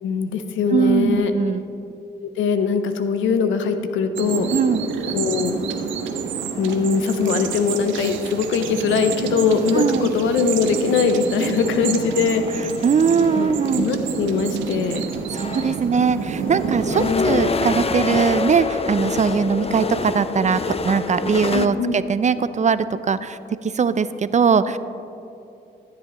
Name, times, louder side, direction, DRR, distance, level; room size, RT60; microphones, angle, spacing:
voice 1, 0.0-1.3 2.4-4.5 5.1-5.5 6.6-12.6 13.3-13.5 13.8-15.0 17.0-17.4 21.5-21.9, left 5 dB, 90° left, 8 dB, 0.6 m, -21 dB
voice 2, 0.7-1.6 4.5-4.8 9.7-10.1 12.8-13.9 15.3-24.8, right 6 dB, 40° right, 14 dB, 0.4 m, -20 dB
sound 1, 4.2-17.1, right 6 dB, 90° right, 0.6 m, -28 dB
sound 2, 11.6-13.8 14.8-14.9 15.2-21.7, left 4 dB, 30° left, 0.5 m, -27 dB
13.5 x 7.6 x 3.0 m, 2.7 s
supercardioid pair, 45°, 19 cm